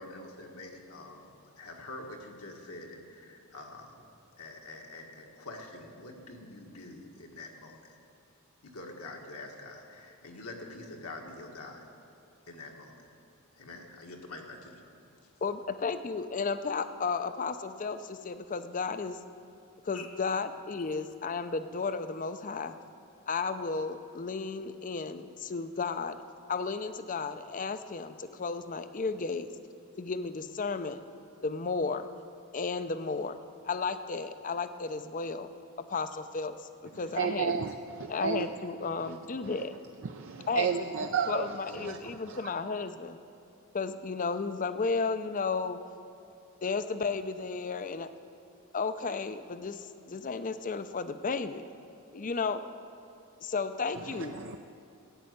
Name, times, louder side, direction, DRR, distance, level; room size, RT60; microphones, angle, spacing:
voice 1, 0.0-4.0 4.4-7.7 8.6-11.9 12.5-12.9 13.6-14.8 19.9-20.1, left 2 dB, 75° left, 1 dB, 1.7 m, -45 dB
voice 2, 15.4-19.2 19.8-22.8 23.3-26.2 26.5-29.5 30.0-31.0 31.4-32.1 32.5-33.4 33.6-35.5 35.9-36.6 36.8-37.5 38.1-39.7 40.5-40.9 41.3-43.2 43.7-45.8 46.6-48.1 48.7-51.7 52.1-52.6 53.4-54.4, left 4 dB, 35° left, 11 dB, 0.5 m, -33 dB
voice 3, 37.2-37.7 38.0-38.5 40.0-41.5 41.8-42.0 42.3-42.4 54.4-54.6, right 6 dB, 55° right, 5 dB, 0.5 m, -31 dB
14.5 x 7.6 x 9.3 m, 2.6 s
head